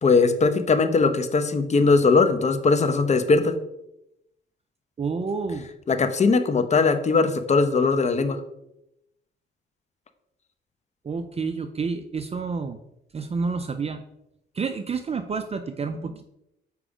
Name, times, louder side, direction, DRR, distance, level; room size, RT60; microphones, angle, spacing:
voice 1, 0.0-3.6 5.9-8.4, left 4 dB, 35° left, 9 dB, 0.9 m, -20 dB
voice 2, 5.0-5.7 11.0-12.8 13.1-14.0 14.5-16.2, right 4 dB, 30° right, 8 dB, 0.6 m, -29 dB
7.1 x 4.9 x 5.0 m, 0.84 s
cardioid pair, 90°, 20 cm